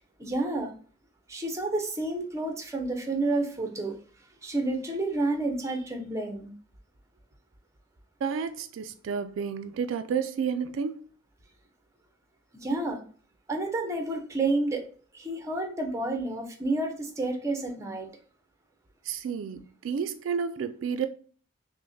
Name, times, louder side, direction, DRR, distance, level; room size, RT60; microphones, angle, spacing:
voice 1, 0.2-0.7 1.3-4.0 4.4-6.5 12.5-13.0 13.5-14.9 15.1-18.1, right 2 dB, 15° right, 0.6 m, -30 dB
voice 2, 8.2-11.1 19.0-21.1, right 6 dB, 70° right, 0.3 m, -31 dB
5.7 x 2.1 x 2.6 m
head